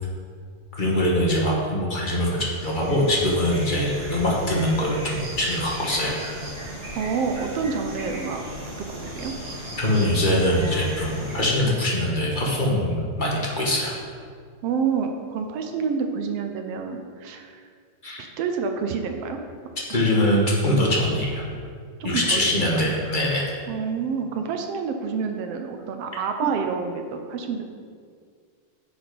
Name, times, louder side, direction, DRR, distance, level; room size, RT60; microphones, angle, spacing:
voice 1, 0.7-6.1 9.8-14.0 18.0-18.2 19.9-21.4 22.0-23.5, left 1 dB, 30° left, -3 dB, 0.8 m, -23 dB
sound 1, 2.2-11.5, right 1 dB, 25° right, 2.0 m, -36 dB
voice 2, 6.9-8.4 8.9-9.3 14.6-17.7 18.2-19.4 19.9-20.2 22.0-22.8 23.7-27.6, right 6 dB, 70° right, 4 dB, 1.5 m, -28 dB
9.9 x 7.0 x 5.2 m, 2.1 s
omnidirectional pair, 3.4 m